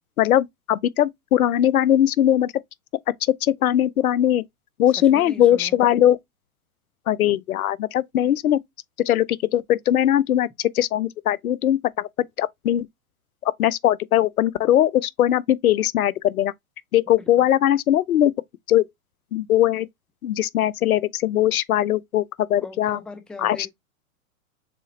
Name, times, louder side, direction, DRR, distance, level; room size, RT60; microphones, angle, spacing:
voice 1, 0.2-2.5 3.4-4.4 4.8-6.2 7.1-8.6 9.1-12.1 12.4-12.9 13.4-16.5 16.9-18.3 18.7-18.9 19.3-19.9 20.2-23.0 23.4-23.7, left 12 dB, 85° left, 0.5 m, -20 dB
voice 2, 5.1-5.8 7.2-7.4 17.2-17.5 22.6-23.7, left 2 dB, ahead, 0.4 m, -40 dB
6.8 x 2.4 x 3.1 m
hypercardioid pair, 115°, 42 cm